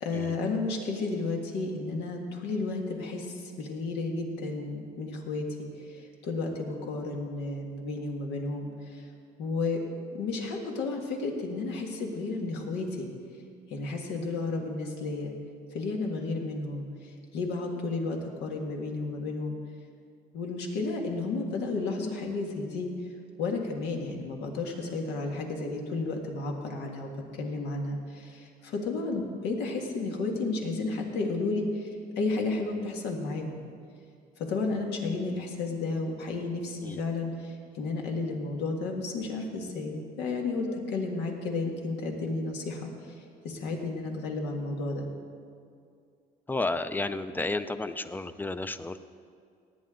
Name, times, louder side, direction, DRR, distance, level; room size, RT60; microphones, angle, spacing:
voice 1, 0.0-9.0 9.4-9.8 10.1-13.1 13.7-15.3 15.7-16.8 17.3-19.6 20.3-22.9 23.4-31.9 32.2-33.6 34.4-42.9 43.4-45.1, left 3 dB, 85° left, 1 dB, 1.9 m, -32 dB
voice 2, 46.5-49.0, left 2 dB, 10° left, 12 dB, 0.5 m, -32 dB
18.5 x 9.5 x 3.8 m, 2.3 s
cardioid pair, 110°, 17 cm